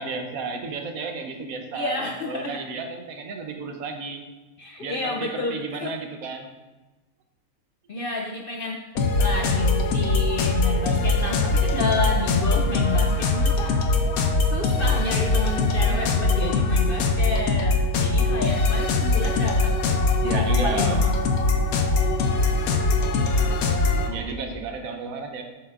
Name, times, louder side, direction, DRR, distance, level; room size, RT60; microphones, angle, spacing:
voice 1, 0.0-4.2 4.8-6.5 11.2-11.3 15.8-16.1 18.3-18.4 20.2-21.1 24.1-25.4, right 4 dB, 75° right, 4 dB, 1.2 m, -32 dB
voice 2, 1.7-2.6 4.6-6.0 7.9-8.8 9.2-14.1 14.5-19.8 20.3-21.1, left 3 dB, 65° left, 1 dB, 0.5 m, -30 dB
sound 1, 8.9-24.1, left 3 dB, 85° left, 1.2 m, -22 dB
7.7 x 6.0 x 2.5 m, 1.2 s
omnidirectional pair, 1.5 m